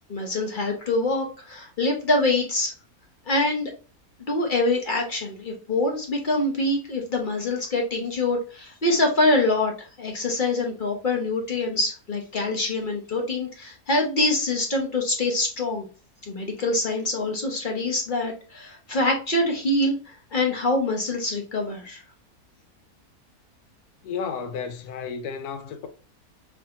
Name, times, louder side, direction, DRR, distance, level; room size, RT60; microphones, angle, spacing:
voice 1, 0.1-2.7 3.3-3.7 4.2-15.9 16.3-20.0 20.3-22.0, left 2 dB, 40° left, 0.8 m, -25 dB
voice 2, 24.0-25.9, left 6 dB, 85° left, 1.2 m, -32 dB
4.3 x 2.8 x 2.7 m
omnidirectional pair, 1.6 m